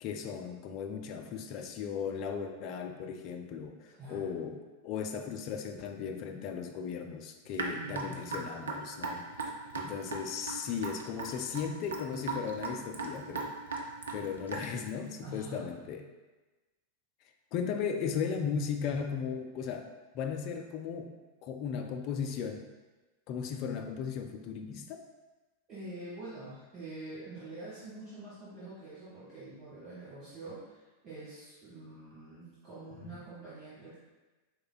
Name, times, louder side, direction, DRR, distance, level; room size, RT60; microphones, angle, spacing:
voice 1, 0.0-9.2 9.7-13.6 14.1-16.1 17.5-21.1 21.4-22.7 23.3-25.0 33.0-33.1, left 6 dB, 40° left, 5 dB, 0.3 m, -36 dB
voice 2, 4.0-4.3 7.7-8.5 15.2-15.7 25.7-34.0, right 1 dB, 35° right, -10 dB, 1.1 m, -46 dB
Raindrop / Drip, 7.5-14.9, right 4 dB, 70° right, 0.4 m, -37 dB
4.3 x 3.2 x 2.2 m, 1.2 s
figure-of-eight pair, 90°, 0 cm